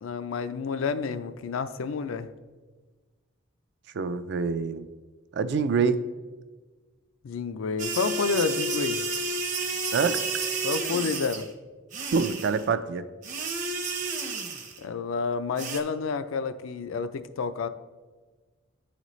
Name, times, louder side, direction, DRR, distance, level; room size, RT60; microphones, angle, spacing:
voice 1, 0.0-2.3 7.2-9.0 10.6-11.5 14.8-17.7, left 5 dB, 80° left, 11 dB, 0.4 m, -29 dB
voice 2, 3.9-4.8 5.3-6.0 9.9-10.2 12.1-13.1, right 5 dB, 55° right, 12 dB, 0.3 m, -25 dB
sound 1, 7.8-11.5 11.9-12.6 13.2-14.8 15.6-15.8, right 3 dB, 40° right, 0.7 m, -31 dB
11.0 x 4.0 x 3.1 m, 1.3 s
head